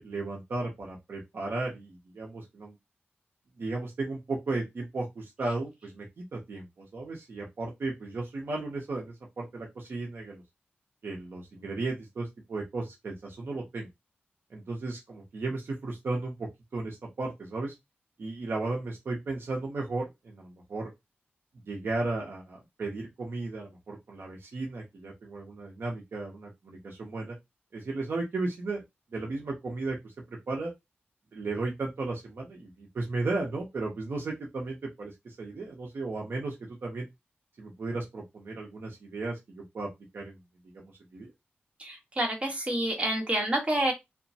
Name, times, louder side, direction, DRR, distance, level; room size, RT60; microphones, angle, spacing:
voice 1, 0.0-2.7 3.6-10.4 11.0-13.9 14.5-17.7 18.2-20.9 21.7-27.4 27.7-28.8 29.1-30.7 31.3-37.1 37.6-40.4 40.7-41.3, right 3 dB, 60° right, -1 dB, 0.7 m, -35 dB
voice 2, 41.8-43.9, right 1 dB, 25° right, 1 dB, 1.1 m, -28 dB
2.9 x 2.1 x 2.7 m, 0.20 s
wide cardioid pair, 95°, 4 cm